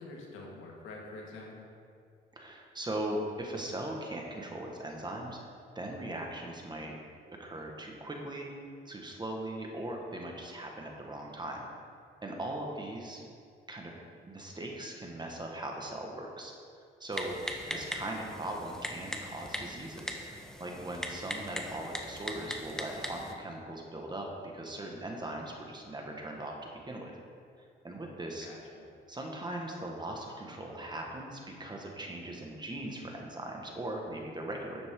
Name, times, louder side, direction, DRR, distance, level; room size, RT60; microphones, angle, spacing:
voice 1, 0.0-1.7 17.7-17.8 28.4-28.9, left 2 dB, 85° left, -2 dB, 2.1 m, -46 dB
voice 2, 2.3-5.4 5.7-7.0 7.4-8.5 8.8-11.7 12.2-13.2 13.7-13.9 14.3-16.5 17.0-17.3 17.7-24.3 24.5-26.5 26.8-27.1 27.8-28.5 29.1-34.9, right 1 dB, 20° right, 0 dB, 1.7 m, -39 dB
Typing, 17.1-23.3, equal, 5° left, 1.1 m, -40 dB
11.5 x 7.8 x 3.9 m, 2.2 s
cardioid pair, 90°, 20 cm